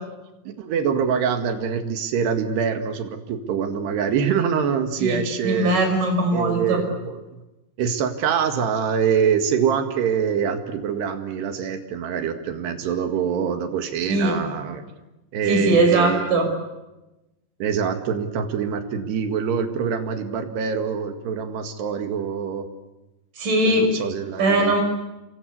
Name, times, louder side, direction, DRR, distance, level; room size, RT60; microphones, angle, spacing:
voice 1, 0.5-5.8 6.3-7.4 7.8-14.9 15.3-16.5 17.6-22.7 23.6-24.7, right 7 dB, 65° right, 6 dB, 3.6 m, -25 dB
voice 2, 5.4-6.8 14.1-14.4 15.5-16.5 23.4-23.9 24.4-24.8, right 2 dB, 40° right, 3 dB, 7.6 m, -20 dB
29.5 x 24.0 x 8.3 m, 1.0 s
omnidirectional pair, 5.9 m